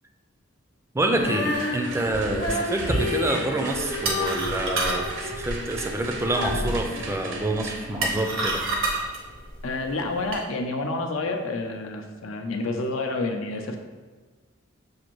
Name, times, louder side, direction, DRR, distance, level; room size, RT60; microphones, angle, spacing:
voice 1, 0.9-8.6, right 1 dB, 15° right, 4 dB, 0.3 m, -27 dB
Female singing, 1.1-8.1, left 1 dB, 50° left, 0.8 m, -31 dB
sound 1, 1.5-9.5, right 3 dB, 65° right, 0.6 m, -39 dB
sound 2, 3.7-10.4, right 2 dB, 90° right, 0.9 m, -30 dB
voice 2, 9.6-13.8, left 2 dB, 90° left, 4 dB, 0.5 m, -29 dB
6.3 x 2.5 x 3.0 m, 1.3 s
head